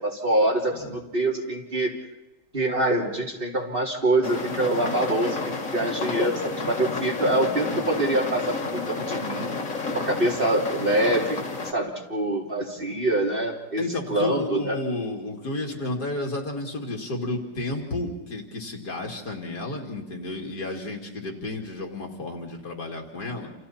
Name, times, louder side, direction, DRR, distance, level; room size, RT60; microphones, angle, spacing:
voice 1, 0.0-1.9 2.5-9.5 9.9-11.4 11.7-14.8, right 1 dB, 30° right, -2 dB, 3.4 m, -25 dB
sound 1, 4.2-11.7, left 3 dB, 50° left, 2.3 m, -30 dB
voice 2, 13.8-23.5, left 2 dB, 65° left, 1 dB, 3.2 m, -32 dB
29.0 x 29.0 x 4.4 m, 0.96 s
omnidirectional pair, 1.9 m